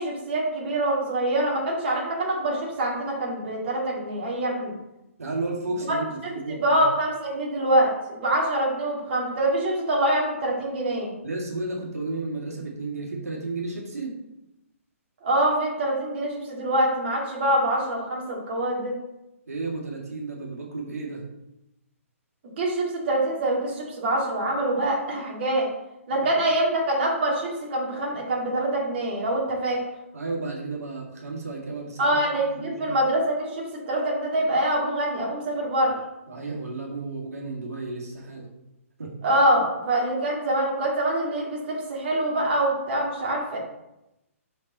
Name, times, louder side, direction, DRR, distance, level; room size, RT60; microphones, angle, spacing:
voice 1, 0.0-4.7 5.9-6.0 6.2-6.3 6.6-11.1 15.2-18.9 22.6-25.7 26.1-29.8 32.0-36.0 39.2-43.6, right 1 dB, 45° right, -2 dB, 2.2 m, -25 dB
voice 2, 5.2-6.8 11.2-14.1 19.5-21.2 26.1-26.4 30.1-32.2 32.5-33.0 36.3-38.5 39.0-39.1, right 3 dB, 85° right, -3 dB, 2.0 m, -33 dB
5.7 x 5.2 x 4.1 m, 0.90 s
hypercardioid pair, 145°, 8 cm